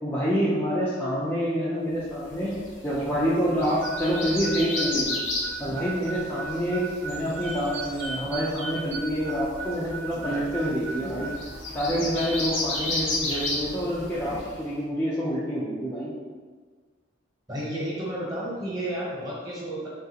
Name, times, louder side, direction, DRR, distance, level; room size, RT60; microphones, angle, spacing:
voice 1, 0.0-2.5 2.8-5.2 5.6-11.3 11.7-16.1, equal, 10° left, -10 dB, 0.4 m, -27 dB
sound 1, 2.2-14.7, left 2 dB, 75° left, 0.8 m, -34 dB
Harmonica, 3.8-11.4, right 4 dB, 60° right, 0.4 m, -37 dB
sound 2, 4.0-4.8 7.4-9.1 11.9-13.6 14.0-14.1, right 2 dB, 90° right, 0.7 m, -38 dB
voice 2, 17.5-19.9, right 1 dB, 20° right, -6 dB, 0.9 m, -32 dB
3.6 x 2.4 x 2.7 m, 1.5 s
head